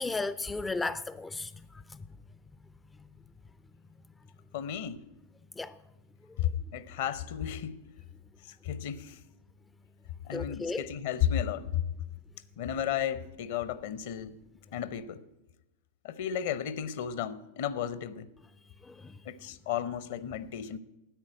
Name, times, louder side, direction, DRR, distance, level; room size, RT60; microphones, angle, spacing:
voice 1, 0.0-1.5 5.6-5.7 10.3-10.8 18.9-19.1, left 3 dB, 10° left, 0.3 m, -34 dB
voice 2, 4.5-5.0 6.4-7.8 8.4-9.2 10.2-11.8 12.6-14.4 14.7-15.2 16.0-18.3 19.2-20.8, left 9 dB, 55° left, 0.7 m, -33 dB
10.5 x 8.9 x 8.8 m
figure-of-eight pair, 90°, 0 cm